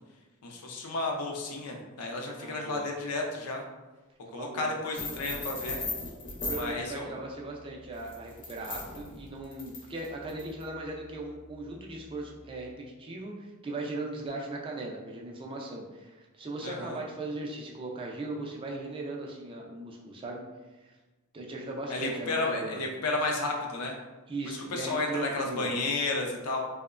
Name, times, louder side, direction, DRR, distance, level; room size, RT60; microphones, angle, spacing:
voice 1, 0.4-3.6 4.3-5.8 6.5-7.1 16.6-17.0 21.9-24.0 24.5-26.6, left 2 dB, 90° left, 1 dB, 0.5 m, -32 dB
voice 2, 2.4-2.9 4.2-4.7 6.4-12.7 13.0-20.4 20.8-21.0 21.3-22.8 24.3-25.7, right 2 dB, 25° right, -1 dB, 0.3 m, -38 dB
sound 1, 4.9-6.7 7.9-10.6, left 3 dB, 40° left, 0.5 m, -37 dB
2.8 x 2.1 x 2.4 m, 1.2 s
head